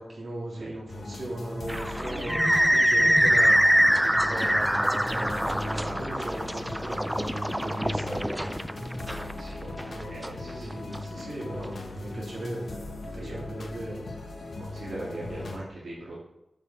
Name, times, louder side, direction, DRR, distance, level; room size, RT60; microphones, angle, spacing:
voice 1, 0.0-8.3 9.6-10.2 10.4-14.0, right 1 dB, 55° right, -5 dB, 3.5 m, -37 dB
sound 1, 0.9-15.6, left 2 dB, 90° left, 1.4 m, -39 dB
sound 2, 1.7-11.0, equal, 5° right, 0.3 m, -24 dB
voice 2, 10.1-10.8 11.1-11.3 13.1-13.4 14.6-16.2, right 1 dB, 80° right, -7 dB, 2.3 m, -40 dB
7.5 x 7.0 x 4.6 m, 0.94 s
wide cardioid pair, 100°, 0 cm